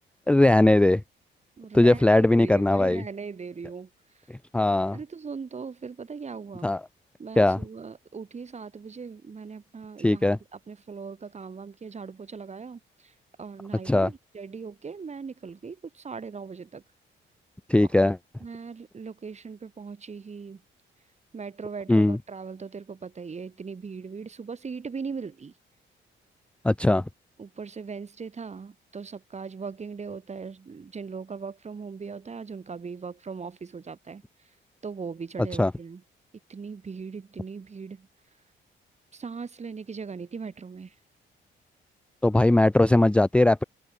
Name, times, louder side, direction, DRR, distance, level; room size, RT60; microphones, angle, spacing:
voice 1, 0.3-1.0 1.7-3.0 4.3-5.0 6.6-6.8 7.4-7.6 10.0-10.4 13.9-14.1 17.7-18.2 21.9-22.2 26.6-27.0 35.6-35.7 42.2-43.6, left 2 dB, 5° left, 0.5 m, -20 dB
voice 2, 1.6-3.9 4.9-6.7 7.2-13.1 13.4-16.8 17.8-18.1 18.4-20.6 21.3-25.5 27.4-34.2 34.8-36.0 36.5-38.1 39.1-40.9, right 5 dB, 35° right, 3.1 m, -39 dB
cardioid pair, 90°, 20 cm